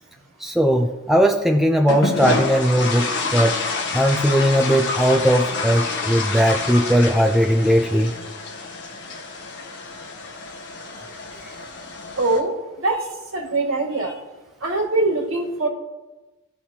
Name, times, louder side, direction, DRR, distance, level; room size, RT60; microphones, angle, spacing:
voice 1, 0.4-3.6 3.9-8.1, equal, ahead, 3 dB, 0.5 m, -18 dB
sound 1, 1.9-12.4, left 3 dB, 60° left, 1.4 m, -28 dB
voice 2, 12.2-12.5 12.8-13.0 13.3-14.1 14.6-15.7, right 2 dB, 65° right, 0 dB, 1.9 m, -22 dB
17.5 x 5.8 x 2.8 m, 1.1 s
head